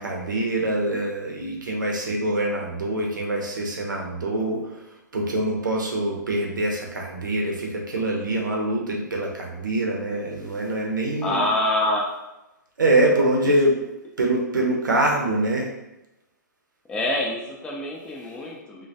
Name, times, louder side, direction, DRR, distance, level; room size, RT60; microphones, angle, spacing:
voice 1, 0.0-4.8 5.1-11.4 12.8-13.8 14.2-15.7, right 1 dB, 80° right, 0 dB, 0.6 m, -24 dB
voice 2, 11.2-12.2 13.4-13.5 16.9-18.9, left 1 dB, 10° left, -3 dB, 0.3 m, -26 dB
2.1 x 2.1 x 2.7 m, 0.95 s
hypercardioid pair, 125°, 10 cm